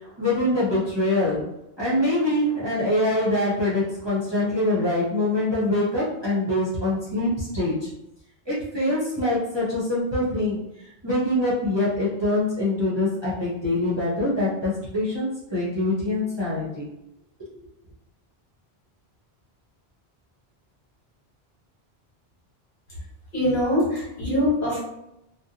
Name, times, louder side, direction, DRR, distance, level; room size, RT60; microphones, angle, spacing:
voice 1, 0.0-1.4 1.8-7.9 8.5-16.9, left 1 dB, 30° right, -9 dB, 0.6 m, -24 dB
voice 2, 23.3-24.8, left 1 dB, 55° left, -7 dB, 1.3 m, -23 dB
2.5 x 2.1 x 2.7 m, 0.87 s
omnidirectional pair, 1.0 m